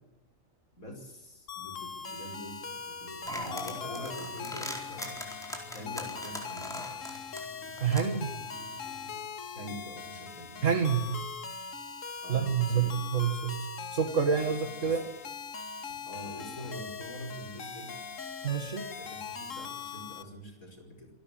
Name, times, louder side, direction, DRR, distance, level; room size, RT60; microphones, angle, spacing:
voice 1, 0.8-5.2 5.7-6.8 9.5-10.5 12.2-12.9 14.8-15.0 16.0-18.1 19.0-21.1, equal, 85° left, 2 dB, 6.0 m, -45 dB
sound 1, 1.5-20.2, left 6 dB, 70° left, 1.8 m, -41 dB
sound 2, 3.3-9.3, equal, ahead, 4.3 m, -42 dB
voice 2, 7.8-8.3 10.6-11.2 12.3-15.1 18.4-18.9, right 7 dB, 65° right, 6 dB, 2.0 m, -28 dB
27.5 x 12.5 x 8.9 m, 0.97 s
omnidirectional pair, 1.4 m